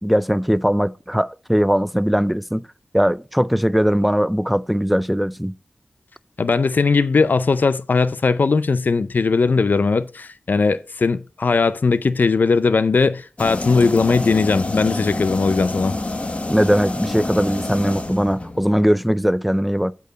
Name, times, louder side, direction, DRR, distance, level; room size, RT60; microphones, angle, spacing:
voice 1, 0.0-2.6 2.9-5.5 16.5-19.9, equal, ahead, 0.4 m, -19 dB
voice 2, 6.4-16.0, left 4 dB, 65° left, 0.5 m, -19 dB
sound 1, 13.4-18.7, left 2 dB, 40° left, 1.2 m, -27 dB
8.0 x 4.6 x 5.0 m
cardioid pair, 40°, 3 cm